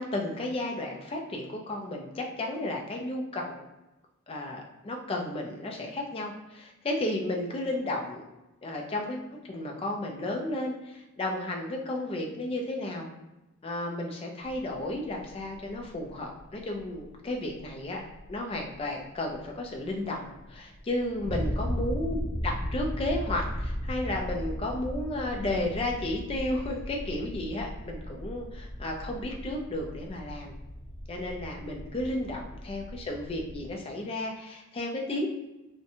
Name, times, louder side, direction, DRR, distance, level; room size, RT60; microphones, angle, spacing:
voice 1, 0.0-3.6 4.3-8.2 8.6-9.2 9.4-13.1 13.6-18.0 18.3-30.5 31.1-35.3, left 1 dB, 25° left, 1 dB, 0.3 m, -33 dB
sound 1, 14.5-33.7, equal, 35° right, 0.7 m, -37 dB
2.7 x 2.1 x 2.6 m, 1.0 s
head